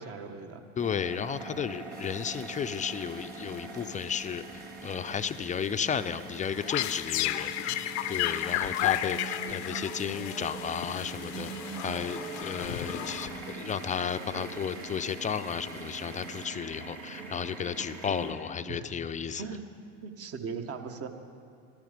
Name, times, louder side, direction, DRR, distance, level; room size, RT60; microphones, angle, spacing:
voice 1, 0.0-1.0 7.6-7.8 18.7-18.9 19.4-19.6 20.0-21.1, right 5 dB, 45° right, 6 dB, 1.2 m, -39 dB
voice 2, 0.8-11.5 11.8-19.5, left 7 dB, 20° left, 10 dB, 0.5 m, -33 dB
sound 1, 0.8-18.3, right 4 dB, 75° right, 2.5 m, -43 dB
sound 2, 1.9-16.5, right 4 dB, 25° right, 1.8 m, -53 dB
sound 3, 6.4-13.7, left 13 dB, 75° left, 0.6 m, -33 dB
13.5 x 13.0 x 5.2 m, 2.3 s
hypercardioid pair, 75°, 34 cm